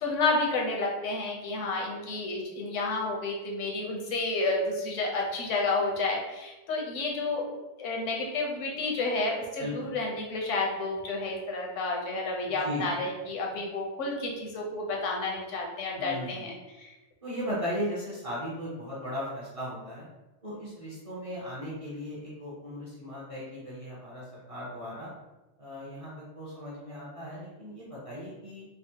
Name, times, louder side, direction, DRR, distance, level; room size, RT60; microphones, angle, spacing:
voice 1, 0.0-7.5 7.8-16.9, left 3 dB, 80° left, -1 dB, 1.0 m, -30 dB
voice 2, 9.6-9.9 12.5-12.9 16.0-16.5 17.2-20.1 20.4-25.1 25.6-28.7, equal, 35° right, -7 dB, 0.6 m, -37 dB
3.4 x 2.0 x 2.7 m, 1.1 s
omnidirectional pair, 1.3 m